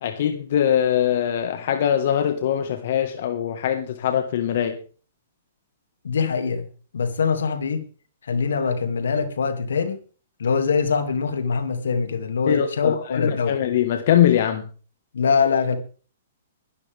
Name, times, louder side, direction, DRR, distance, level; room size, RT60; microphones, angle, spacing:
voice 1, 0.0-4.8 12.5-14.6, left 10 dB, 60° left, 1.6 m, -22 dB
voice 2, 6.0-6.7 6.9-7.9 8.2-10.0 10.4-13.6 15.1-15.8, left 5 dB, 75° left, 2.5 m, -23 dB
20.5 x 12.5 x 3.6 m
hypercardioid pair, 125°, 0 cm